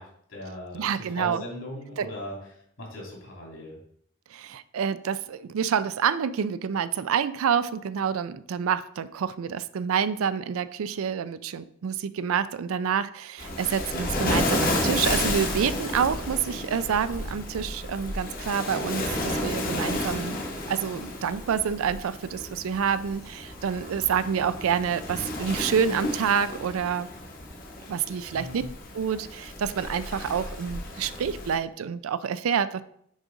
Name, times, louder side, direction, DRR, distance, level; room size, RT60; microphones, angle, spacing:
voice 1, 0.0-2.4 2.8-3.8 28.3-28.7, left 1 dB, 75° left, -2 dB, 2.6 m, -39 dB
voice 2, 0.7-1.4 2.0-2.1 4.3-20.4 20.7-27.1 27.9-28.6 28.9-32.8, right 7 dB, 80° right, 14 dB, 0.4 m, -28 dB
Waves surf, 13.4-31.6, left 1 dB, 40° left, 1.0 m, -32 dB
6.3 x 5.0 x 3.9 m, 0.69 s
head